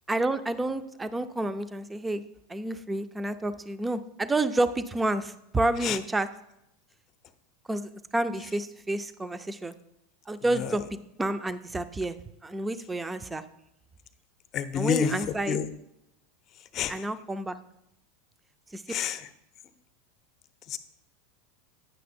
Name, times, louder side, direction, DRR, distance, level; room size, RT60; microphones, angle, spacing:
voice 1, 0.1-2.2 2.5-6.3 7.7-9.7 10.3-10.9 11.2-12.2 12.4-13.4 14.7-15.6 16.9-17.6 18.7-18.8, right 2 dB, 15° right, 11 dB, 0.5 m, -29 dB
voice 2, 14.5-15.1 15.5-15.7 16.7-16.9 18.9-19.2 20.7-20.8, left 8 dB, 40° left, 10 dB, 0.7 m, -28 dB
9.3 x 6.1 x 4.4 m, 0.82 s
hypercardioid pair, 105°, 0 cm